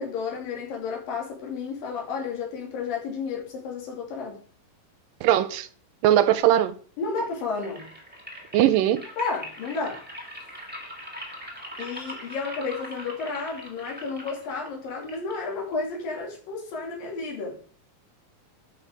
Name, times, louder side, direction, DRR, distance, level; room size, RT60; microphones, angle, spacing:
voice 1, 0.0-4.4 7.0-7.9 9.2-10.1 11.8-17.6, left 4 dB, 75° left, 4.4 m, -32 dB
voice 2, 5.2-5.7 6.0-6.8 8.5-9.0, right 12 dB, 80° right, 2.2 m, -20 dB
Rain stick, 7.0-16.1, equal, 5° right, 1.6 m, -42 dB
11.0 x 6.2 x 5.0 m
omnidirectional pair, 4.1 m